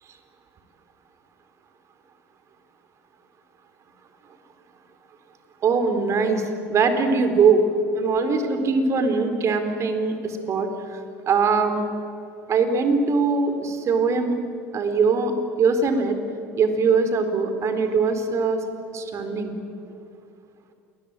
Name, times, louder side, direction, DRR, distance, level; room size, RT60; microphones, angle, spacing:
voice 1, 5.6-7.6 7.9-11.9 12.5-14.4 14.7-15.3 15.6-16.2 16.6-18.6 18.9-19.5, right 4 dB, 45° right, 8 dB, 4.1 m, -22 dB
28.0 x 20.5 x 9.0 m, 2.6 s
hypercardioid pair, 70°, 7 cm